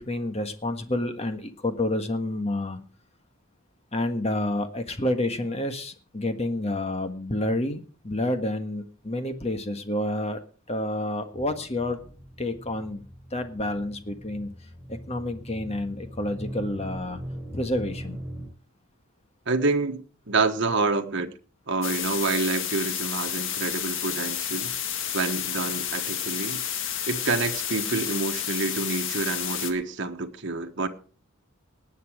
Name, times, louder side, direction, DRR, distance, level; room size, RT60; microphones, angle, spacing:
voice 1, 0.0-2.8 3.9-10.4 10.7-12.0 12.4-13.0 13.3-14.5 14.9-17.2 17.5-18.2, left 1 dB, 30° left, 1.6 m, -29 dB
sound 1, 11.3-18.5, equal, 10° right, 6.7 m, -40 dB
voice 2, 19.5-21.4 21.7-24.7 25.1-26.6 27.1-30.9, right 3 dB, 55° right, 1.3 m, -27 dB
sound 2, 21.8-29.7, left 9 dB, 60° left, 1.6 m, -30 dB
19.0 x 8.7 x 5.0 m
head